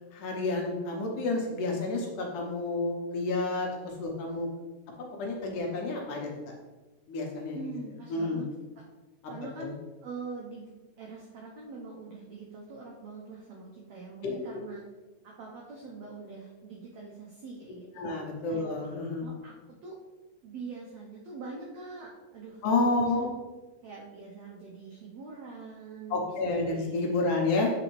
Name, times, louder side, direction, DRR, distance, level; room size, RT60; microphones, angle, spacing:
voice 1, 0.1-4.5 5.2-6.3 7.1-7.6 8.1-8.4 9.6-9.7 18.0-19.3 22.6-23.3 26.1-27.7, left 3 dB, 75° left, 0 dB, 2.2 m, -30 dB
voice 2, 7.5-8.4 9.3-9.7 10.0-10.6 11.0-14.8 15.2-18.1 18.5-18.6 19.2-19.9 20.4-22.6 23.0-23.1 23.8-27.4, right 4 dB, 85° right, -2 dB, 1.5 m, -44 dB
7.9 x 4.0 x 3.1 m, 1.2 s
omnidirectional pair, 4.1 m